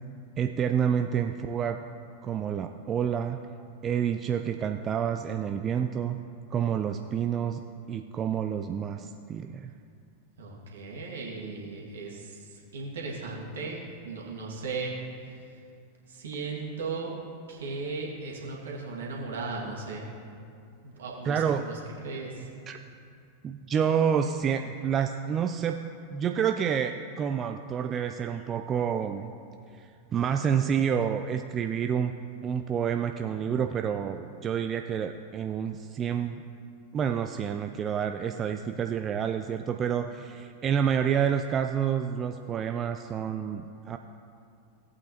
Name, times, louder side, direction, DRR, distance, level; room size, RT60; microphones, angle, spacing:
voice 1, 0.4-1.8 2.2-3.4 3.8-6.2 6.5-7.6 7.9-9.7 21.2-21.6 22.7-22.8 23.4-25.8 26.1-29.3 29.7-32.1 32.4-36.4 36.9-44.0, right 8 dB, 25° right, 6 dB, 0.4 m, -28 dB
voice 2, 10.4-14.9 15.2-15.3 16.1-17.1 17.5-20.0 20.8-22.5, right 4 dB, 65° right, -3 dB, 2.1 m, -37 dB
17.0 x 8.5 x 2.9 m, 2.4 s
figure-of-eight pair, 90°, 0 cm